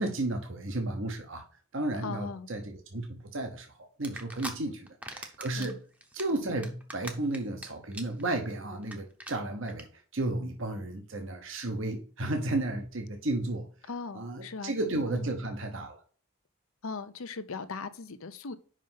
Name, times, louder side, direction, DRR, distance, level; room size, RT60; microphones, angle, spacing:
voice 1, 0.0-1.4 1.7-5.8 6.1-9.9 10.1-13.7 14.1-16.0, right 2 dB, 60° right, 1.0 m, -33 dB
voice 2, 2.0-2.5 4.7-4.8 5.5-5.8 13.9-15.3 16.8-18.6, left 4 dB, 70° left, 0.7 m, -39 dB
sound 1, 4.0-4.5 4.9-5.7 6.0-7.6 7.9-8.2 8.5-8.6 8.8-8.9 9.2-9.3 9.7-9.8, right 1 dB, 5° right, 0.8 m, -40 dB
5.4 x 5.0 x 5.6 m
head